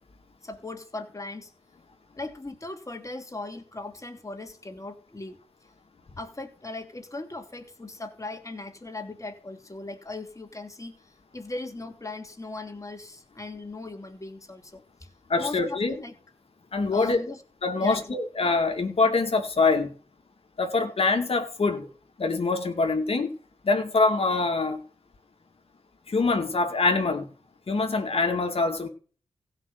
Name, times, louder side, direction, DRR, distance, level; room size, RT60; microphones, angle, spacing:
voice 1, 0.4-1.5 2.2-5.4 6.2-10.9 11.3-14.8 15.4-16.2 16.9-17.4 17.8-18.1, left 2 dB, 30° left, 5 dB, 2.9 m, -38 dB
voice 2, 15.3-15.9 16.7-17.2 17.6-19.9 20.6-21.9 22.2-23.3 23.6-24.8 26.1-27.3 27.7-28.9, left 3 dB, 60° left, 4 dB, 2.2 m, -24 dB
15.5 x 5.7 x 8.0 m, 0.40 s
cardioid pair, 60°, 11 cm